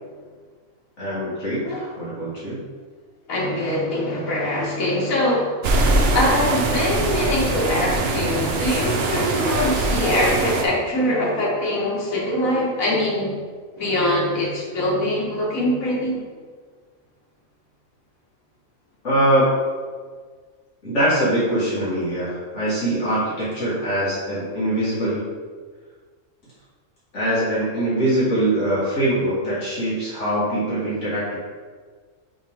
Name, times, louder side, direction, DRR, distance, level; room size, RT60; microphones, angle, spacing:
voice 1, 1.0-2.6 19.0-19.5 20.8-25.3 27.1-31.4, right 1 dB, 60° left, -10 dB, 2.1 m, -23 dB
voice 2, 3.3-5.6 6.1-13.3 13.7-16.2, left 1 dB, 80° left, -4 dB, 1.9 m, -23 dB
sound 1, 5.6-10.6, right 2 dB, 55° right, 0.9 m, -22 dB
8.4 x 3.6 x 3.5 m, 1.6 s
omnidirectional pair, 1.4 m